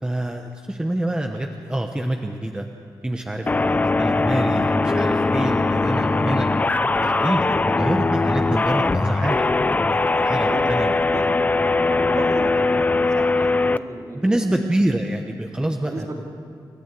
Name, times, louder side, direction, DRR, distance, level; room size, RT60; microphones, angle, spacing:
voice 1, 0.0-2.7 3.0-6.5 7.0-9.4 9.9-10.9 14.1-16.2, right 1 dB, 10° right, 3 dB, 0.9 m, -26 dB
sound 1, 3.5-13.8, left 3 dB, 20° left, 0.5 m, -20 dB
voice 2, 10.5-14.5 15.8-16.2, right 2 dB, 45° right, 0 dB, 3.1 m, -34 dB
28.5 x 14.0 x 8.3 m, 2.3 s
wide cardioid pair, 155°, 8 cm